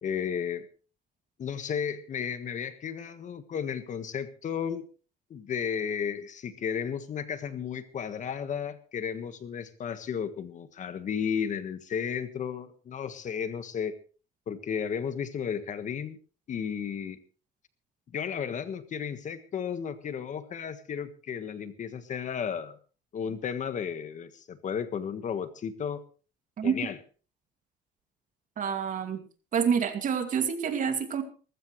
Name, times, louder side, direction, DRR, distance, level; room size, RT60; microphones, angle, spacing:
voice 1, 0.0-0.7 1.4-4.8 5.3-13.9 14.5-16.2 16.5-17.2 18.1-22.8 23.1-26.0 26.6-27.0, left 7 dB, 45° left, 11 dB, 1.5 m, -33 dB
voice 2, 28.6-29.2 29.5-31.2, right 7 dB, 50° right, 7 dB, 2.5 m, -27 dB
19.5 x 15.5 x 3.2 m, 0.37 s
cardioid pair, 110°, 17 cm